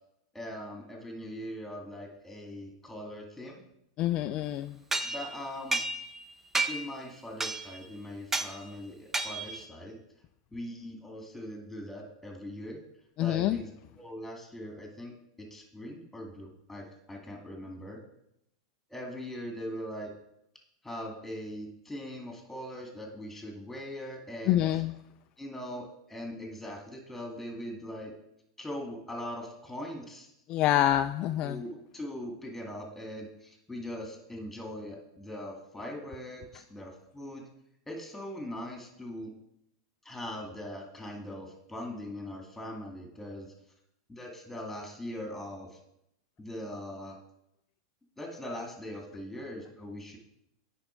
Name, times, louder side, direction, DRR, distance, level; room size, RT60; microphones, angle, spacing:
voice 1, 0.3-3.6 5.0-5.8 6.7-10.0 10.5-12.8 13.2-13.7 13.9-18.0 18.9-20.1 20.8-24.8 25.4-28.1 28.6-30.3 31.3-37.4 37.9-39.3 40.0-43.5 44.1-45.8 46.4-47.2 48.2-50.2, equal, 5° left, 2 dB, 2.1 m, -41 dB
voice 2, 4.0-4.8 13.2-13.6 24.5-24.9 30.5-31.6, left 13 dB, 45° left, 9 dB, 0.3 m, -26 dB
sound 1, 4.9-6.2 6.5-7.0 7.4-7.8 8.3-8.5 9.1-9.6, right 3 dB, 15° right, 0.6 m, -32 dB
8.8 x 5.3 x 4.5 m, 0.81 s
hypercardioid pair, 105°, 2 cm